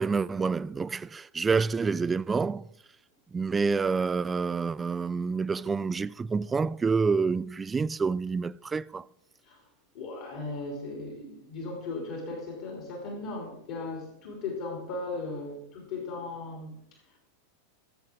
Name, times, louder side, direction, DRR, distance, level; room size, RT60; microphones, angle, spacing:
voice 1, 0.0-2.7 3.3-9.0, right 5 dB, 15° right, 0.3 m, -28 dB
voice 2, 9.9-16.8, left 3 dB, 50° left, 3.0 m, -37 dB
17.0 x 7.8 x 3.6 m
figure-of-eight pair, 90°, 0 cm